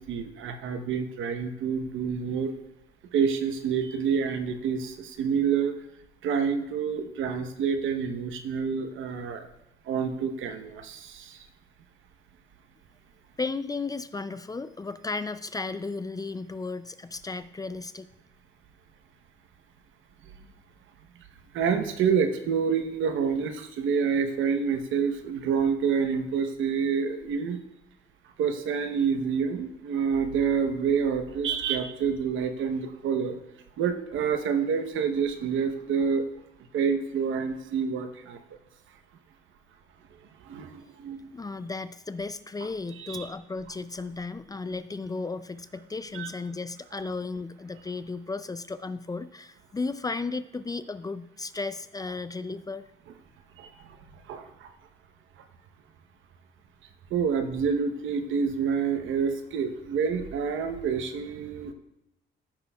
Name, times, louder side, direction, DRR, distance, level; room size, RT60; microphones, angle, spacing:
voice 1, 0.0-2.5 3.1-5.7 6.2-9.5 9.9-11.4 21.5-27.6 28.4-33.4 33.8-36.2 36.7-38.4 40.5-41.2 43.0-43.3 46.1-46.3 53.6-53.7 54.3-54.7 57.1-61.7, right 6 dB, 80° right, 8 dB, 0.9 m, -28 dB
voice 2, 13.4-18.1 41.3-52.9, left 3 dB, 20° left, 13 dB, 0.4 m, -34 dB
14.5 x 6.2 x 2.3 m, 0.90 s
cardioid pair, 90°, 20 cm